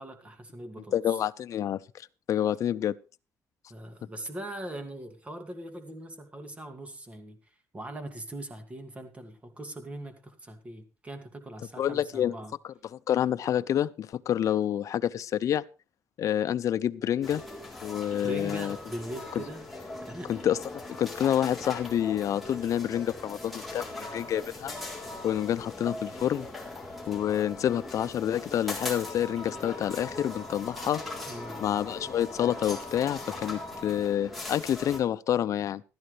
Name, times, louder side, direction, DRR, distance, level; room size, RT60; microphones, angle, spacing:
voice 1, 0.0-1.2 3.7-12.5 18.2-19.6 20.0-20.3 31.3-31.6, right 1 dB, 20° right, 2.3 m, -41 dB
voice 2, 0.9-1.8 2.3-3.0 11.8-12.3 12.9-15.6 16.2-17.4 17.8-18.8 20.3-20.6 21.0-24.7 25.2-26.5 27.1-31.0 31.6-35.8, left 10 dB, 60° left, 0.6 m, -28 dB
sound 1, 17.2-35.0, left 2 dB, ahead, 3.6 m, -40 dB
15.5 x 13.0 x 3.3 m
cardioid pair, 135°, 6 cm